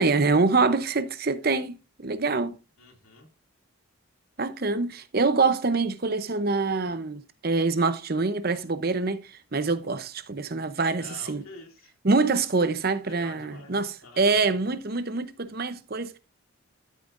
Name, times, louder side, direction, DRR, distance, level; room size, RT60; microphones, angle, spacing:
voice 1, 0.0-2.6 4.4-11.4 12.0-16.2, right 3 dB, 45° right, 0.7 m, -25 dB
voice 2, 2.8-3.3 10.9-11.9 13.0-14.4, left 2 dB, 80° left, 2.6 m, -47 dB
13.0 x 7.6 x 2.5 m
head